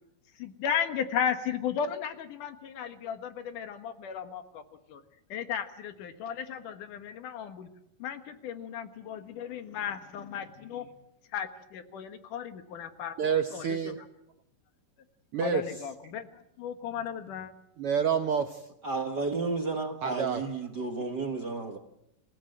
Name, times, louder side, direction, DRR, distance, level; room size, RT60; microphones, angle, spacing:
voice 1, 0.4-4.6 4.9-5.0 5.3-7.7 8.0-10.9 11.3-13.2 13.5-14.0 15.4-17.5, left 8 dB, 70° left, 2.9 m, -35 dB
voice 2, 13.2-14.0 15.3-15.6 17.8-18.7 20.0-20.5, right 7 dB, 75° right, 1.3 m, -28 dB
voice 3, 18.8-21.8, right 3 dB, 50° right, 1.3 m, -32 dB
28.0 x 16.0 x 7.7 m
omnidirectional pair, 3.9 m